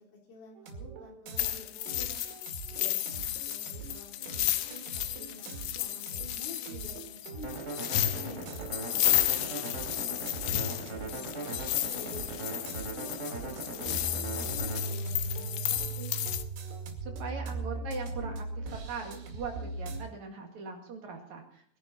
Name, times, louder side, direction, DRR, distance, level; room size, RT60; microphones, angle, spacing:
voice 1, 0.3-2.2 2.7-7.6 8.1-8.4 8.7-10.1 10.5-11.5 11.8-13.1 13.4-16.1, left 2 dB, 60° left, -2 dB, 5.7 m, -49 dB
sound 1, 0.6-20.0, right 3 dB, 90° right, 4.5 m, -40 dB
sound 2, 1.4-16.4, left 14 dB, 90° left, 3.0 m, -33 dB
sound 3, 7.4-14.8, right 3 dB, 20° right, 3.4 m, -40 dB
voice 2, 17.0-21.6, right 4 dB, 50° right, 2 dB, 2.9 m, -40 dB
23.0 x 11.0 x 4.2 m, 0.65 s
omnidirectional pair, 4.8 m